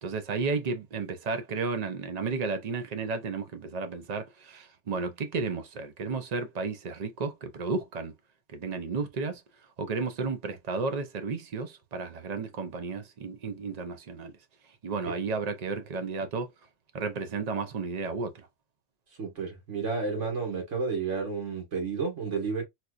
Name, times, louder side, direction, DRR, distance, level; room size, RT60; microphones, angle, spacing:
voice 1, 0.0-8.1 8.5-9.4 9.8-14.3 14.8-16.5 16.9-18.3, right 4 dB, 45° right, 0.6 m, -33 dB
voice 2, 19.2-22.6, right 4 dB, 75° right, 2.0 m, -31 dB
4.3 x 2.4 x 2.4 m
omnidirectional pair, 1.3 m